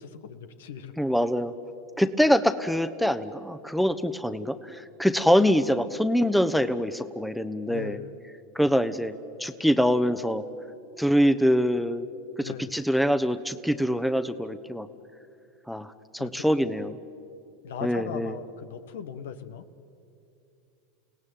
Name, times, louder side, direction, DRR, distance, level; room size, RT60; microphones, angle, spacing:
voice 1, 0.0-0.9 7.7-8.1 12.4-12.8 16.2-16.3 17.6-19.7, left 7 dB, 75° left, 11 dB, 1.3 m, -38 dB
voice 2, 1.0-1.5 2.0-8.0 8.5-9.1 9.4-10.4 11.0-12.1 12.4-14.9 15.7-17.0 17.8-18.4, equal, ahead, 11 dB, 1.0 m, -24 dB
30.0 x 17.5 x 9.2 m, 2.6 s
hypercardioid pair, 90°, 0 cm